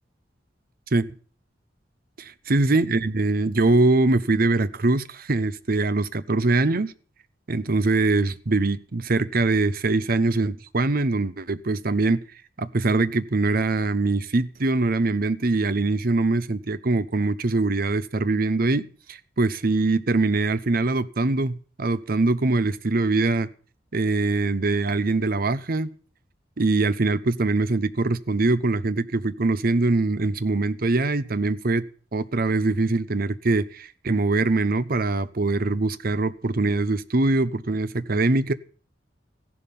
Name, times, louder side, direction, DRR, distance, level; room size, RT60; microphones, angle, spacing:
voice 1, 2.2-6.9 7.5-12.2 12.6-23.5 23.9-25.9 26.6-31.9 32.1-38.5, right 2 dB, 55° right, 0.8 m, -23 dB
15.0 x 11.0 x 5.4 m
head